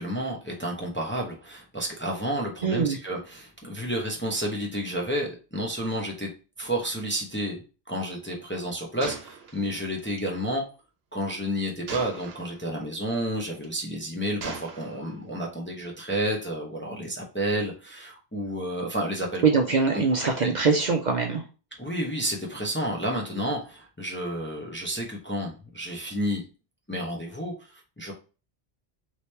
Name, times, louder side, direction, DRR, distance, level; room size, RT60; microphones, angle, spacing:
voice 1, 0.0-6.3 6.6-7.6 7.9-10.6 11.1-19.4 19.9-20.0 20.4-20.5 21.8-26.4 26.9-28.1, equal, 15° left, -1 dB, 0.5 m, -30 dB
voice 2, 2.6-3.0 19.4-21.4, right 5 dB, 55° right, 2 dB, 0.6 m, -23 dB
Gunshot gunfire, 9.0-10.3 11.9-12.6 13.5-13.8 14.4-15.2, right 5 dB, 80° right, 1.0 m, -39 dB
3.1 x 2.9 x 3.2 m, 0.34 s
omnidirectional pair, 1.1 m